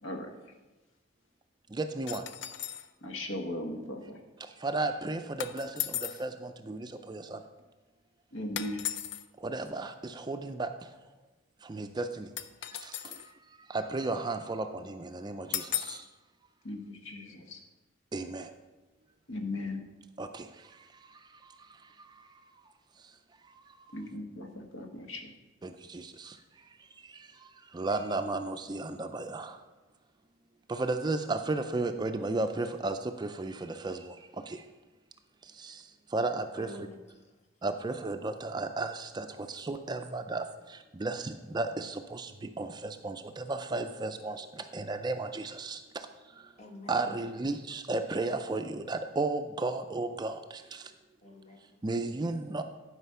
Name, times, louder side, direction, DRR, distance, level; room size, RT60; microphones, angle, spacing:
voice 1, 1.7-2.2 4.6-7.4 9.4-10.7 11.7-12.3 12.8-13.1 13.7-16.0 18.1-18.5 20.2-20.5 25.6-26.3 27.7-29.6 30.7-34.1 34.5-34.6 35.6-35.8 36.1-36.7 37.6-40.4 40.7-42.3 42.6-45.8 46.9-50.8 51.8-52.6, right 2 dB, 20° right, 8 dB, 0.4 m, -34 dB
sound 1, 2.1-2.9 5.4-6.3 8.6-9.2 12.4-13.3 15.5-16.1, left 11 dB, 60° left, 0.5 m, -36 dB
voice 2, 3.0-4.2 8.3-8.9 16.6-17.6 19.3-19.9 23.9-25.3, left 1 dB, 75° left, 4 dB, 1.1 m, -38 dB
voice 3, 36.6-37.3 45.6-45.7 46.6-47.1 51.2-51.8, left 1 dB, 35° left, 3 dB, 1.2 m, -48 dB
11.5 x 5.0 x 5.6 m, 1.2 s
head